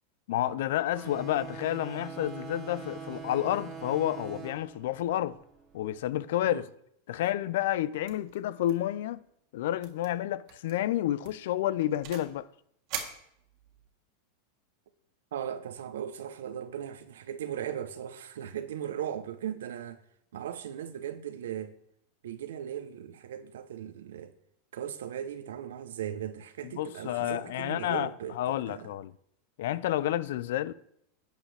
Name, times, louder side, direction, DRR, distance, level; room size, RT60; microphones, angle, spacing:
voice 1, 0.3-5.4 5.7-6.7 7.1-9.2 9.5-12.5 26.6-28.1 28.3-29.1 29.6-30.7, left 13 dB, 70° left, 0.4 m, -30 dB
sound 1, 0.9-6.1, right 6 dB, 35° right, 1.8 m, -43 dB
sound 2, 8.1-8.4 8.6-8.9 9.2-9.3 9.8-10.1 10.5-10.7 11.2-12.4 12.9-13.9, right 8 dB, 55° right, 1.7 m, -41 dB
voice 2, 15.3-20.0 20.3-21.7 22.2-24.3 24.7-28.9, right 9 dB, 80° right, 0.9 m, -38 dB
11.5 x 7.4 x 3.4 m
hypercardioid pair, 100°, 0 cm